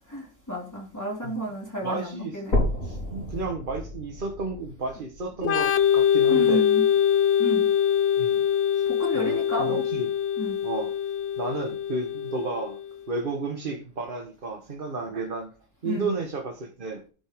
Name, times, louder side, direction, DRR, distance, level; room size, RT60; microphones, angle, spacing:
voice 1, 0.1-2.6 6.3-6.8 7.4-7.7 9.0-9.8 10.4-10.6 15.8-16.1, equal, 15° left, -3 dB, 3.1 m, -31 dB
voice 2, 1.8-6.6 8.2-8.4 8.7-8.8 9.1-10.1 10.6-10.9 11.4-12.8 13.1-15.5 15.8-17.0, right 3 dB, 40° right, 2 dB, 1.4 m, -32 dB
sound 1, 2.5-6.5 7.1-7.2 7.7-7.8 8.2-8.3 9.1-9.2, left 1 dB, 85° left, 5.0 m, -31 dB
Organ, 5.4-12.9, left 9 dB, 60° left, 0.9 m, -23 dB
12.5 x 5.4 x 5.1 m, 0.37 s
omnidirectional pair, 1.4 m